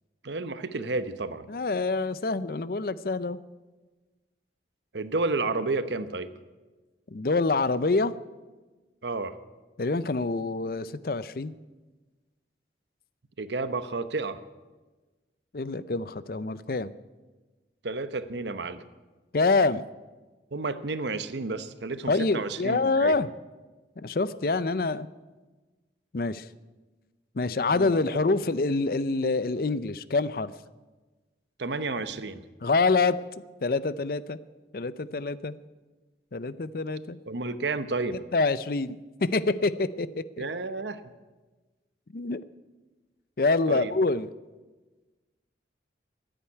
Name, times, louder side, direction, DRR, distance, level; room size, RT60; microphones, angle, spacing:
voice 1, 0.2-1.5 4.9-6.3 9.0-9.4 13.4-14.4 17.8-18.8 20.5-23.1 27.7-27.9 31.6-32.4 37.3-38.2 40.4-41.0 43.7-43.9, right 3 dB, 80° right, 12 dB, 0.9 m, -31 dB
voice 2, 1.5-3.4 7.1-8.1 9.8-11.5 15.5-16.9 19.3-19.8 22.1-23.3 24.0-25.1 26.1-26.4 27.4-30.5 32.6-33.2 33.6-34.4 34.7-35.6 36.3-37.2 38.3-40.1 40.4-40.5 42.1-42.4 43.4-44.3, left 3 dB, 55° left, 16 dB, 0.5 m, -26 dB
14.5 x 9.0 x 9.7 m, 1.2 s
head